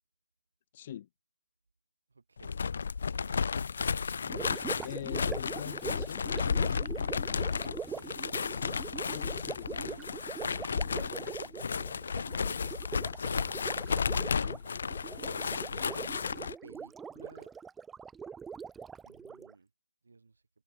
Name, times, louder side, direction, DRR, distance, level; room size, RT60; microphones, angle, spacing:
voice 1, 0.7-1.1 4.8-6.3 9.1-10.0 13.3-13.8, left 11 dB, 35° left, 1.3 m, -43 dB
voice 2, 2.1-2.6 3.1-3.6 7.9-10.1 10.8-12.6 15.2-15.4 16.6-17.5 19.0-19.7 20.0-20.4, right 4 dB, 60° right, 3.2 m, -56 dB
sound 1, 2.4-16.5, left 6 dB, 50° left, 0.3 m, -33 dB
Gurgling, 4.3-19.5, right 6 dB, 5° right, 0.5 m, -43 dB
figure-of-eight pair, 140°, 0 cm